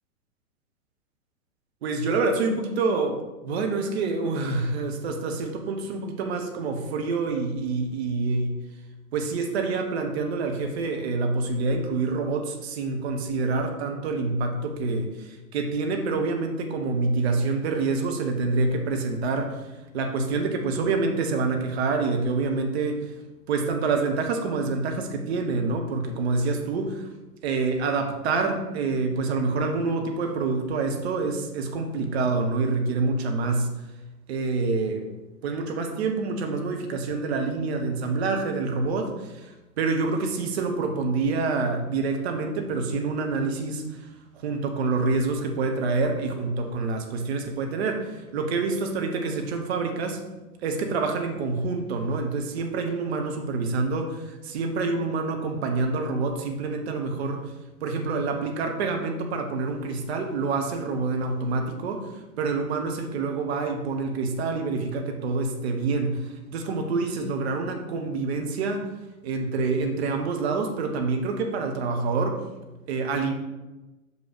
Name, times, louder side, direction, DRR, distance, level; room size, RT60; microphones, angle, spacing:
voice 1, 1.8-8.6 9.1-19.6 19.9-23.1 23.5-27.1 27.4-33.7 34.3-35.0 35.4-44.1 44.4-50.2 50.6-57.4 57.8-68.9 69.2-72.4 72.9-73.3, right 3 dB, 45° right, 4 dB, 1.2 m, -27 dB
6.3 x 5.5 x 5.2 m, 1.1 s
figure-of-eight pair, 105°, 43 cm